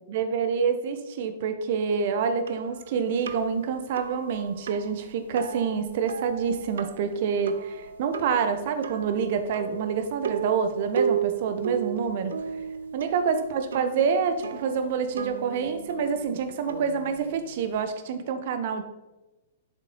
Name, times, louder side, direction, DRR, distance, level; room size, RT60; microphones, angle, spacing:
voice 1, 0.1-12.4 12.9-18.8, right 6 dB, 55° right, 9 dB, 0.9 m, -27 dB
sound 1, 2.5-17.8, right 7 dB, 70° right, 0.5 m, -35 dB
7.6 x 6.5 x 3.9 m, 1.0 s
figure-of-eight pair, 105°, 0 cm